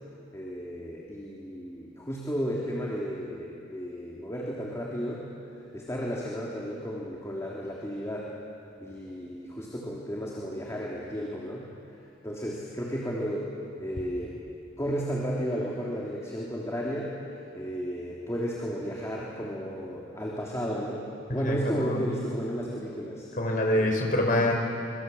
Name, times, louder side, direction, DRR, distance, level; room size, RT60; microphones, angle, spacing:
voice 1, 0.3-5.3 5.7-8.3 8.8-11.7 12.2-13.5 13.8-14.4 14.8-23.9, equal, 15° left, -4 dB, 3.0 m, -33 dB
voice 2, 21.4-22.0 23.4-24.6, left 1 dB, 45° left, 1 dB, 5.1 m, -25 dB
26.0 x 24.0 x 7.9 m, 2.7 s
head